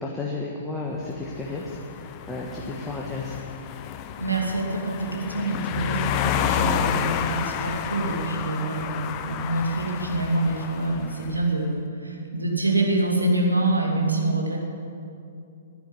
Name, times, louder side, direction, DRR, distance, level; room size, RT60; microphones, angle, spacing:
voice 1, 0.0-3.4, left 3 dB, 5° left, -3 dB, 1.5 m, -33 dB
sound 1, 1.1-11.4, left 9 dB, 30° left, 0.8 m, -30 dB
voice 2, 4.2-14.6, right 2 dB, 80° right, 0 dB, 2.7 m, -26 dB
11.0 x 11.0 x 9.8 m, 2.5 s
figure-of-eight pair, 120°, 0 cm